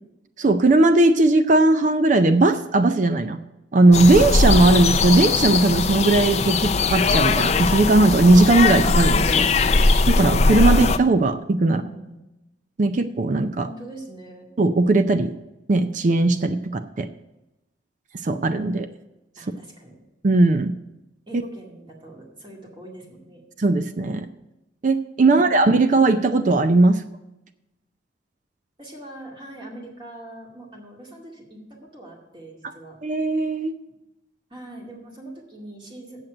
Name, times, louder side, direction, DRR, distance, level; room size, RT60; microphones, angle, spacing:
voice 1, 0.4-3.4 3.7-9.5 10.1-11.8 12.8-13.7 14.6-15.3 15.7-17.1 18.2-18.9 20.2-20.7 23.6-24.3 24.8-27.0 33.0-33.7, right 2 dB, 45° right, 10 dB, 0.4 m, -18 dB
sound 1, 3.9-11.0, left 3 dB, 40° left, 0.5 m, -20 dB
voice 2, 11.7-12.2 13.6-14.5 19.4-20.0 21.3-23.4 25.2-25.6 28.8-33.0 34.5-36.2, right 1 dB, 25° right, -1 dB, 2.2 m, -42 dB
7.8 x 7.4 x 7.7 m, 0.95 s
head